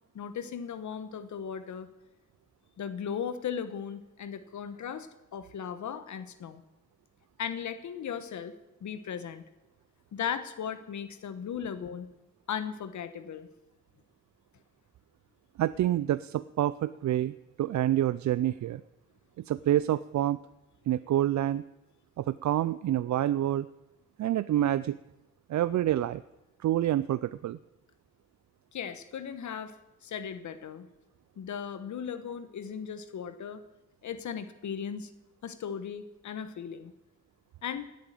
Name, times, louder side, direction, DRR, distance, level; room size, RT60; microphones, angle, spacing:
voice 1, 0.1-1.9 2.8-6.6 7.4-8.5 8.8-9.4 10.1-12.1 12.5-13.5 28.7-29.7 30.0-30.9 31.4-33.6 34.0-35.1 35.4-36.9 37.6-37.9, left 7 dB, 75° left, 12 dB, 1.2 m, -37 dB
voice 2, 15.6-18.8 19.4-20.4 20.9-21.6 22.2-23.7 24.2-25.0 25.5-26.2 26.6-27.6, right 12 dB, 70° right, 16 dB, 0.5 m, -27 dB
17.5 x 8.6 x 9.2 m, 0.99 s
wide cardioid pair, 145°, 29 cm